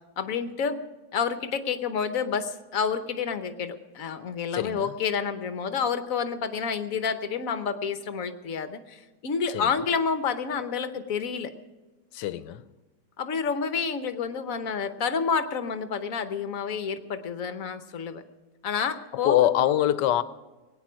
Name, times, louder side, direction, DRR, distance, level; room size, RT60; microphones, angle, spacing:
voice 1, 0.2-0.8 1.1-11.5 13.2-18.2 18.6-19.3, left 6 dB, 55° left, 1.2 m, -29 dB
voice 2, 4.5-4.9 9.5-9.7 12.1-12.7 19.1-20.2, left 12 dB, 90° left, 1.3 m, -24 dB
21.0 x 9.2 x 6.2 m
omnidirectional pair, 1.8 m